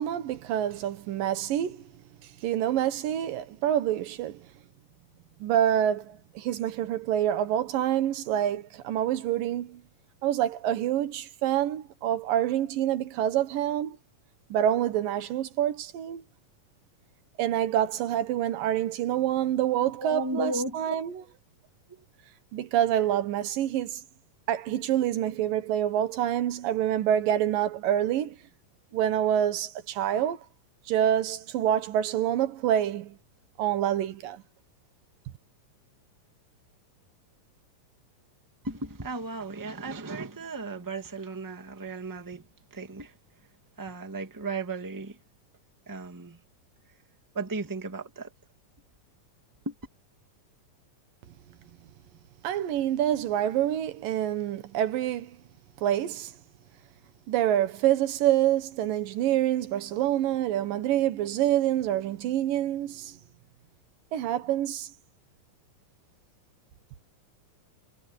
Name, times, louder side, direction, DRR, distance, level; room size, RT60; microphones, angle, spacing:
voice 1, 0.0-1.8 2.4-4.5 5.4-9.8 10.2-14.0 14.5-16.2 17.4-21.2 22.5-24.0 24.5-28.4 28.9-30.4 30.9-33.2 33.6-34.4 52.4-55.4 55.8-56.3 57.3-63.2 64.1-64.9, right 11 dB, 90° right, 3.0 m, -27 dB
voice 2, 20.0-20.9 38.6-42.4 42.7-43.1 43.8-45.2 45.9-46.4 47.3-48.3 49.6-49.7, right 3 dB, 10° right, 1.4 m, -35 dB
omnidirectional pair, 3.8 m